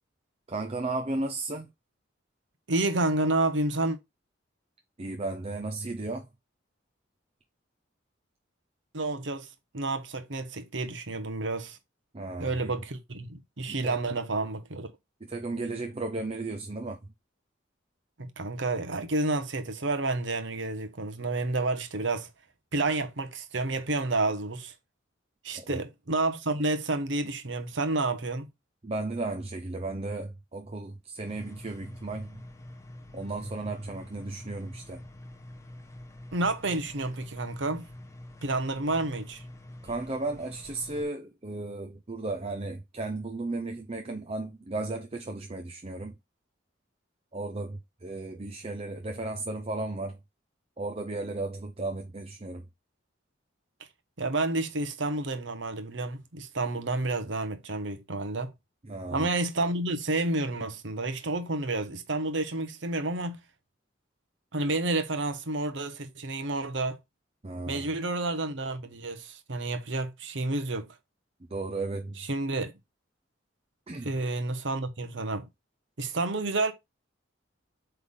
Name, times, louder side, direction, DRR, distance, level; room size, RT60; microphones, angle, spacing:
voice 1, 0.5-1.7 5.0-6.3 12.1-12.7 13.7-14.0 15.2-17.1 25.5-25.8 28.8-32.4 33.1-35.0 39.8-46.2 47.3-50.2 50.8-52.7 58.8-59.3 67.4-67.9 71.5-72.3 73.9-74.1, right 2 dB, 30° right, 0.6 m, -35 dB
voice 2, 2.7-4.0 8.9-9.5 9.7-11.8 12.4-14.9 18.2-22.3 22.7-24.7 25.4-28.5 36.3-37.9 38.4-39.4 54.2-58.5 59.1-63.4 64.5-67.0 67.7-70.9 72.2-72.7 74.0-75.5 76.0-76.7, right 2 dB, 70° right, 1.1 m, -30 dB
sound 1, 31.2-41.0, left 1 dB, 15° left, 0.9 m, -46 dB
8.0 x 3.5 x 3.7 m
head